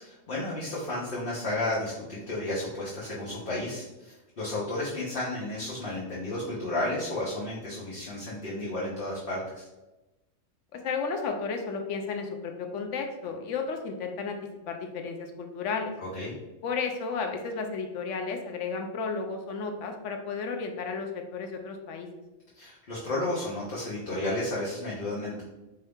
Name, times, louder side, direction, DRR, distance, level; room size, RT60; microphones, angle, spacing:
voice 1, 0.3-9.7 16.0-16.3 22.5-25.4, left 1 dB, 50° left, -8 dB, 1.1 m, -32 dB
voice 2, 10.7-14.4 14.7-15.9 16.6-22.1, left 5 dB, 75° left, 4 dB, 0.9 m, -33 dB
4.6 x 2.7 x 3.4 m, 1.0 s
omnidirectional pair, 1.3 m